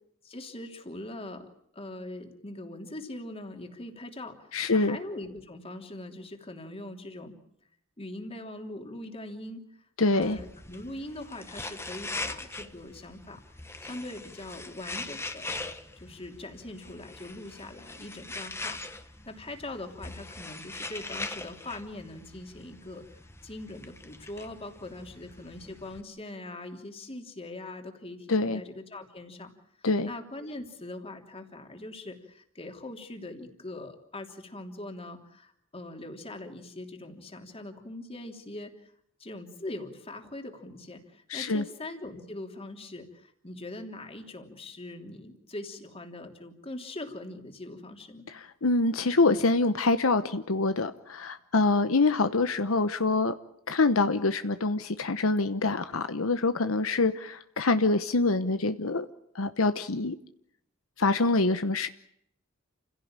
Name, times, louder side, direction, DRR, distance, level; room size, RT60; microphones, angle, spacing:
voice 1, 0.2-7.4 8.0-13.4 13.8-15.5 16.0-18.8 19.2-23.1 23.4-29.5 29.8-38.9 39.2-48.3, left 2 dB, 30° left, 4 dB, 3.2 m, -42 dB
voice 2, 4.5-5.0 10.0-10.4 28.3-28.6 29.8-30.1 41.3-41.6 48.3-53.3 53.7-59.1 59.3-60.2 61.0-61.9, left 3 dB, 75° left, 10 dB, 1.0 m, -25 dB
sound 1, 10.2-26.0, left 2 dB, 15° left, 1.4 m, -41 dB
29.0 x 16.5 x 8.9 m, 0.73 s
head